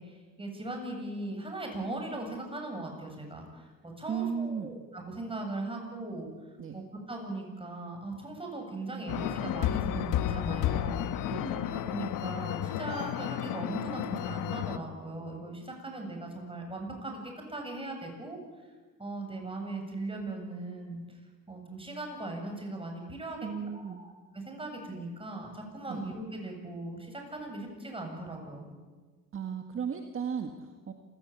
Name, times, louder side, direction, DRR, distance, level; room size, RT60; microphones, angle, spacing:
voice 1, 0.0-6.3 6.7-11.2 11.5-17.2 17.5-18.4 19.0-21.2 21.5-23.4 23.7-28.7, right 2 dB, 15° right, 3 dB, 7.7 m, -39 dB
voice 2, 4.1-4.7 6.6-6.8 11.3-11.5 23.4-24.0 25.9-26.0 29.3-30.9, right 7 dB, 40° right, 5 dB, 1.9 m, -35 dB
sound 1, 9.1-14.8, left 12 dB, 80° left, 1.2 m, -32 dB
27.5 x 17.0 x 8.7 m, 1.4 s
cardioid pair, 90°, 31 cm